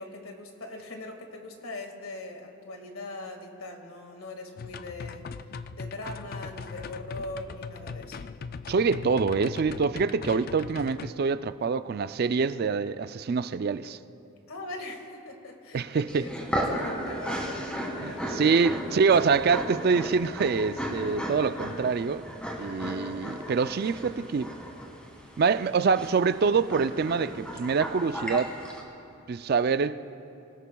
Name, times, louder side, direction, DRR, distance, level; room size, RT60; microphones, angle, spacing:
voice 1, 0.0-8.2 14.5-16.3 16.6-17.6 18.0-18.7, left 2 dB, 85° left, 1.9 m, -41 dB
sound 1, 4.6-11.1, left 4 dB, 45° left, 0.3 m, -40 dB
voice 2, 8.7-14.0 15.7-16.3 18.0-22.2 22.6-24.5 25.4-28.5 29.3-30.0, right 5 dB, 45° right, 0.3 m, -25 dB
sound 2, 16.1-28.8, equal, 5° left, 1.7 m, -35 dB
25.5 x 17.5 x 2.3 m
head